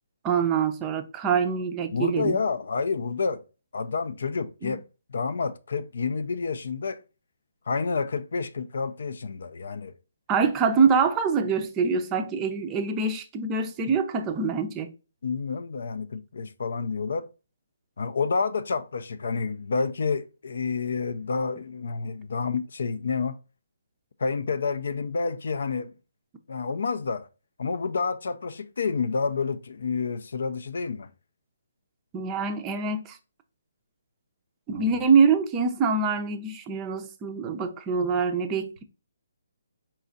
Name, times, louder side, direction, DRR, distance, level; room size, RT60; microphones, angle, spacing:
voice 1, 0.2-2.4 4.6-4.7 10.3-14.9 32.1-33.2 34.7-38.8, right 5 dB, 20° right, 0.5 m, -24 dB
voice 2, 1.9-3.4 3.7-4.8 5.1-7.0 7.7-9.9 15.2-17.3 18.0-23.4 24.2-25.9 26.5-27.3 27.6-31.1 34.7-35.0, left 4 dB, 70° left, 0.4 m, -29 dB
4.3 x 2.4 x 3.8 m
hypercardioid pair, 155°, 0 cm